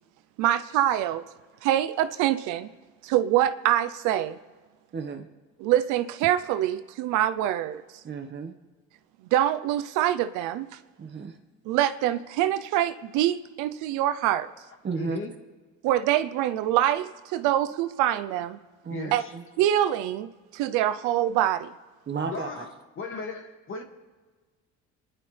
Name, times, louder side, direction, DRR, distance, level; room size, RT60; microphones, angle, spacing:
voice 1, 0.4-1.2 1.6-2.7 3.0-4.4 5.6-7.8 9.3-10.7 11.7-14.5 15.8-18.6 19.1-19.2 19.6-21.7, right 12 dB, 85° right, 12 dB, 0.7 m, -25 dB
voice 2, 4.9-5.3 8.0-8.5 11.0-11.4 14.8-15.2 18.8-19.4 22.1-22.7, right 5 dB, 35° right, 6 dB, 1.5 m, -33 dB
voice 3, 15.0-15.3 18.9-19.3 22.2-23.8, left 3 dB, 45° left, 3 dB, 2.2 m, -36 dB
28.0 x 11.0 x 3.4 m, 1.4 s
cardioid pair, 95°, 30 cm